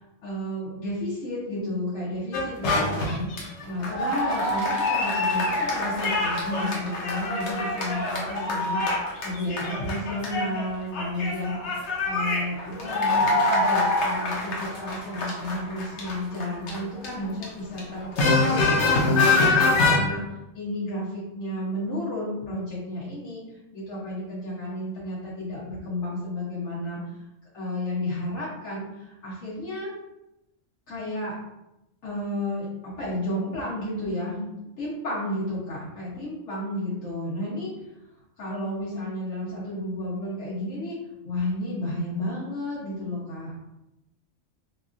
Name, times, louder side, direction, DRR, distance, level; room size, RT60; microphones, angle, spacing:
voice 1, 0.2-3.3 3.6-11.6 12.0-20.2 20.5-23.4 23.7-27.0 27.5-29.9 30.9-31.3 32.0-32.6 33.0-37.7 38.4-41.0 41.2-43.5, left 1 dB, 90° left, -10 dB, 1.4 m, -32 dB
sound 1, 2.3-10.7 10.9-17.4 17.8-20.0, left 2 dB, 65° left, 0.9 m, -25 dB
3.3 x 2.3 x 2.5 m, 0.92 s
omnidirectional pair, 1.3 m